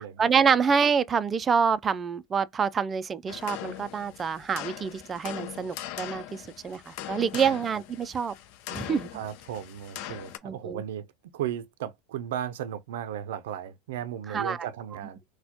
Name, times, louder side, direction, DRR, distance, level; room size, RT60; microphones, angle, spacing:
voice 1, 0.2-8.3 8.7-9.1 10.4-10.8 14.3-14.7, right 6 dB, 20° right, 0.3 m, -26 dB
sound 1, 3.3-10.4, left 12 dB, 60° left, 0.5 m, -40 dB
voice 2, 9.1-11.1 11.3-15.2, right 10 dB, 85° right, 0.5 m, -35 dB
4.2 x 2.2 x 2.8 m
supercardioid pair, 135°, 0 cm